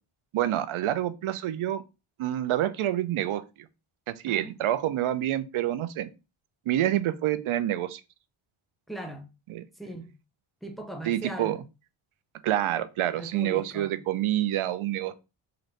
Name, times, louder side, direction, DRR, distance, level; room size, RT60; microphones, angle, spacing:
voice 1, 0.3-1.8 2.2-3.4 4.1-6.1 6.7-8.0 9.5-9.6 11.1-11.6 12.4-15.2, right 13 dB, 75° right, 0.5 m, -27 dB
voice 2, 4.3-4.6 8.9-9.3 9.7-10.1 10.6-11.6 13.2-14.0, right 1 dB, ahead, 0.6 m, -39 dB
3.9 x 2.6 x 3.1 m
wide cardioid pair, 105°, 49 cm